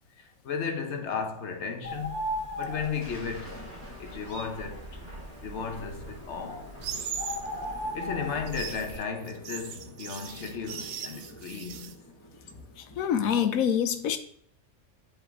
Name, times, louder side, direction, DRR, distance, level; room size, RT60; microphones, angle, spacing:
voice 1, 0.2-2.2 2.6-3.7 4.0-5.0 5.4-6.7 7.9-12.0, left 5 dB, 55° left, 1.1 m, -35 dB
Bird, 1.8-9.0, equal, 30° right, 1.5 m, -38 dB
Thunder, 2.8-13.4, left 1 dB, 10° left, 1.6 m, -49 dB
sound 1, 6.8-7.5 8.3-11.9, right 8 dB, 80° right, 1.1 m, -38 dB
voice 2, 12.8-14.2, left 8 dB, 80° left, 1.1 m, -26 dB
8.5 x 3.7 x 3.6 m
omnidirectional pair, 1.4 m